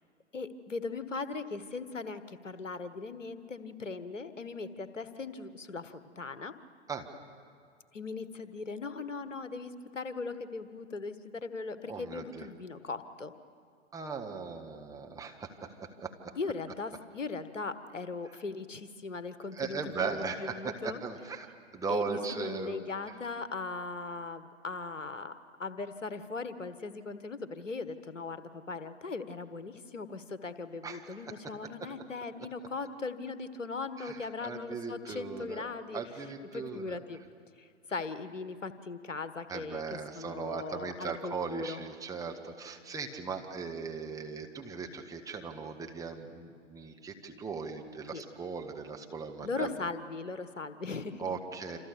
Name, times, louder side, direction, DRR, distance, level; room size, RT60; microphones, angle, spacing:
voice 1, 0.3-6.5 7.9-13.3 16.4-21.0 21.9-25.3 25.6-36.0 36.5-37.2 37.6-41.8 48.1-48.2 49.4-51.2, left 4 dB, 80° left, 12 dB, 1.5 m, -39 dB
voice 2, 11.9-12.5 13.9-15.7 16.0-16.3 19.5-21.5 21.7-22.8 23.1-23.2 30.8-31.3 34.0-35.6 35.9-37.0 39.5-49.7 51.2-51.8, right 5 dB, 10° right, 2 dB, 1.6 m, -38 dB
27.5 x 27.0 x 7.0 m, 2.1 s
figure-of-eight pair, 115°, 37 cm